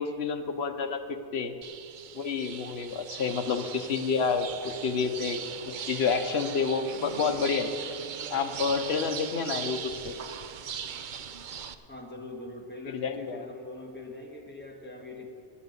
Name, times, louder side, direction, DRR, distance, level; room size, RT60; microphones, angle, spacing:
voice 1, 0.0-1.5 2.1-7.7 8.3-10.2 12.9-13.4, left 5 dB, 75° left, 7 dB, 1.1 m, -29 dB
sound 1, 1.6-11.7, right 7 dB, 55° right, 0.7 m, -39 dB
voice 2, 11.9-15.3, left 2 dB, 10° left, -1 dB, 1.7 m, -42 dB
9.8 x 9.1 x 8.0 m, 2.3 s
omnidirectional pair, 1.1 m